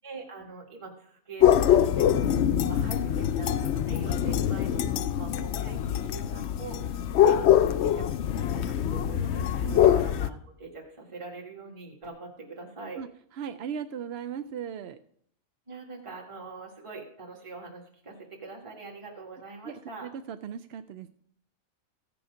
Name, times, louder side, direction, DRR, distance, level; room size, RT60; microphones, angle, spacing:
voice 1, 0.0-2.3 2.6-13.0 15.7-20.1, right 3 dB, 20° right, 0 dB, 1.7 m, -43 dB
sound 1, 1.4-10.3, left 10 dB, 65° left, 0.7 m, -24 dB
voice 2, 13.3-15.0 19.6-21.1, right 8 dB, 60° right, 10 dB, 0.7 m, -37 dB
15.5 x 7.0 x 5.0 m, 0.65 s
omnidirectional pair, 1.5 m